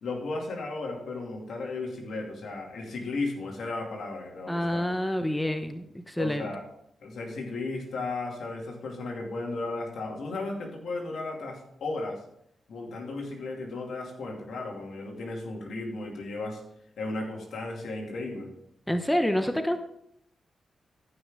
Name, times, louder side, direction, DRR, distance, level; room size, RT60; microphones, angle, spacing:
voice 1, 0.0-4.9 6.2-6.6 7.0-12.2 12.7-16.6 17.0-18.5, left 2 dB, 75° left, 0 dB, 2.6 m, -35 dB
voice 2, 4.5-6.5 18.9-19.8, equal, 5° left, 7 dB, 0.9 m, -27 dB
14.0 x 6.0 x 3.7 m, 0.74 s
cardioid pair, 60°, 0 cm